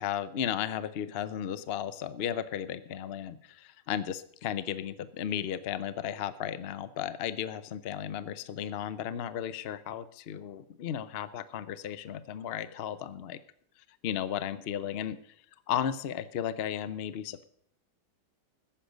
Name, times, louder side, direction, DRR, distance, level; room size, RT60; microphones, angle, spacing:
voice 1, 0.0-13.4 14.0-15.2 15.7-17.4, left 9 dB, 70° left, 14 dB, 0.5 m, -34 dB
14.5 x 10.0 x 5.1 m, 0.65 s
omnidirectional pair, 1.9 m